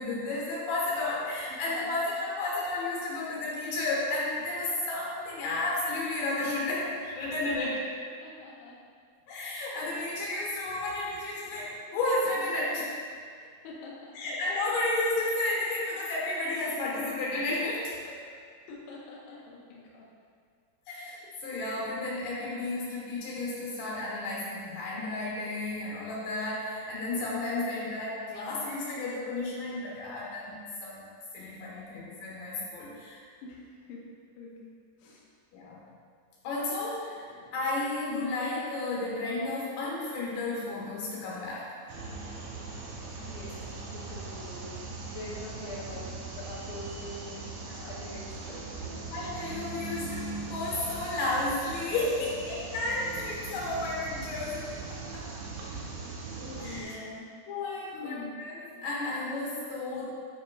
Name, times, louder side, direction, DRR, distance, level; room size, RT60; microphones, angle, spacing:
voice 1, 0.0-7.8 9.3-12.9 14.1-18.2 20.9-31.0 31.3-33.2 35.5-35.8 36.4-41.7 47.7-47.9 49.1-54.6 54.9-55.3 56.6-57.0 57.5-60.0, left 2 dB, 65° left, -5 dB, 2.8 m, -32 dB
voice 2, 8.2-8.8 13.4-14.3 18.0-20.1 33.4-34.1 34.4-35.2 43.2-44.8 45.1-49.1 56.4-57.3 57.9-58.4, left 2 dB, 85° left, -4 dB, 2.3 m, -45 dB
sound 1, 41.9-56.8, right 3 dB, 80° right, 2.2 m, -40 dB
8.7 x 5.1 x 2.3 m, 2.1 s
omnidirectional pair, 5.6 m